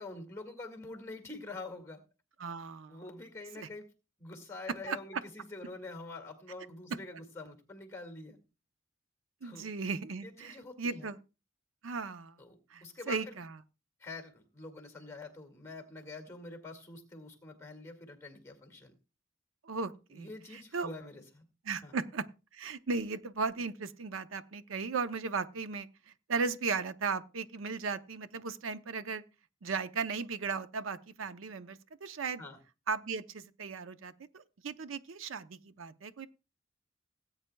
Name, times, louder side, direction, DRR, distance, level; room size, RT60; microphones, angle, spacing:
voice 1, 0.0-2.0 2.9-3.9 4.2-8.4 9.4-9.7 10.2-11.1 12.4-13.4 14.0-18.9 20.1-21.5 21.8-21.9 32.4-32.6, left 3 dB, 15° left, 2.0 m, -46 dB
voice 2, 2.4-3.0 3.6-3.7 4.9-5.0 9.4-11.2 11.8-12.4 12.7-13.6 19.6-20.9 21.7-22.3 22.5-29.2 29.6-32.4 32.9-36.3, right 4 dB, 85° right, 0.6 m, -36 dB
18.0 x 8.8 x 2.2 m
head